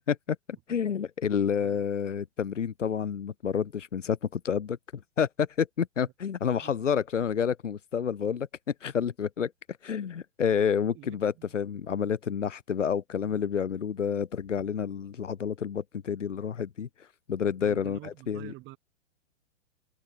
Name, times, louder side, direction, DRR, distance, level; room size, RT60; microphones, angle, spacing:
voice 1, 0.7-4.8 5.2-8.5 8.8-9.5 9.8-18.5, left 7 dB, 85° left, 0.8 m, -29 dB
voice 2, 1.3-1.8 6.6-6.7 10.9-11.5 17.6-18.8, right 19 dB, 30° right, 4.3 m, -48 dB
figure-of-eight pair, 105°, 36 cm